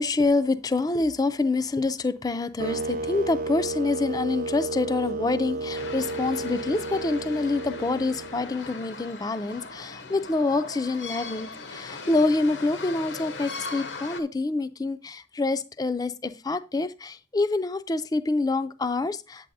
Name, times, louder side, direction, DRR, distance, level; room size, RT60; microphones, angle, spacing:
voice 1, 0.0-19.5, left 3 dB, 20° left, 0.3 m, -26 dB
sound 1, 2.6-8.7, right 2 dB, 50° right, 0.4 m, -33 dB
sound 2, 5.7-14.2, left 4 dB, 75° left, 0.9 m, -39 dB
8.3 x 7.6 x 2.6 m
head